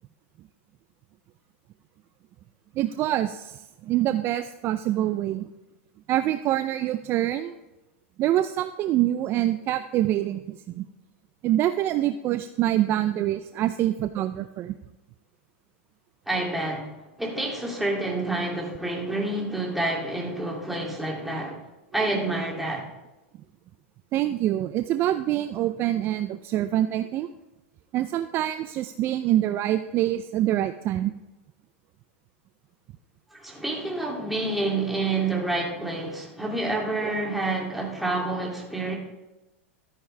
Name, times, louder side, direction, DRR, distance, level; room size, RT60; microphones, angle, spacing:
voice 1, 2.8-5.5 6.1-7.6 8.2-10.8 11.4-14.8 24.1-27.3 27.9-31.1 37.0-37.1, right 13 dB, 35° right, 10 dB, 0.5 m, -25 dB
voice 2, 16.3-21.6 21.9-22.9 33.3-39.0, right 2 dB, ahead, -2 dB, 2.7 m, -28 dB
13.0 x 9.7 x 3.3 m, 1.0 s
hypercardioid pair, 125°, 7 cm